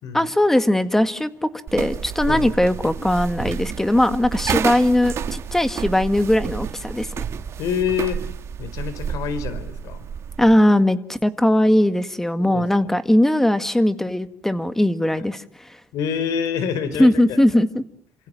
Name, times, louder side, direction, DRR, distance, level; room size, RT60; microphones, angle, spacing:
voice 1, 0.1-1.3 1.7-7.2 10.4-15.8 17.0-17.8, left 1 dB, 5° left, 11 dB, 1.8 m, -19 dB
sound 1, 1.7-10.6, right 7 dB, 55° right, 2.0 m, -30 dB
voice 2, 7.6-8.2 8.6-10.1 12.4-12.7 15.9-17.4, left 7 dB, 90° left, 13 dB, 4.4 m, -26 dB
29.5 x 26.5 x 7.7 m, 0.63 s
cardioid pair, 130°, 6 cm